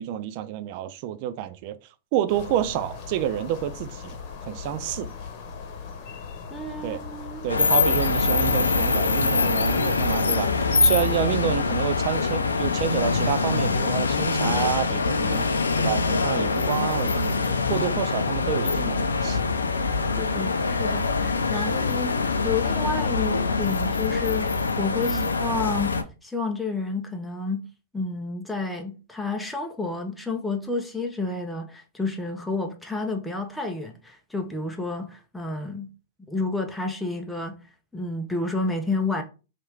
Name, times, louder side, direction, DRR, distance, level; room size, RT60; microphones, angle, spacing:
voice 1, 0.0-1.8 2.1-4.2 4.4-5.1 6.8-7.0 7.4-15.5 15.8-19.4 21.5-21.9 25.0-25.3, right 11 dB, 50° right, 0.4 m, -29 dB
sound 1, 2.3-9.3, left 5 dB, 45° left, 0.9 m, -39 dB
voice 2, 6.5-7.4 20.2-26.0 26.2-27.7 27.9-35.9 36.3-37.6 37.9-39.2, left 3 dB, 5° left, 0.5 m, -30 dB
sound 2, 7.5-26.0, left 4 dB, 85° left, 0.4 m, -24 dB
3.0 x 2.4 x 3.2 m
hypercardioid pair, 105°, 0 cm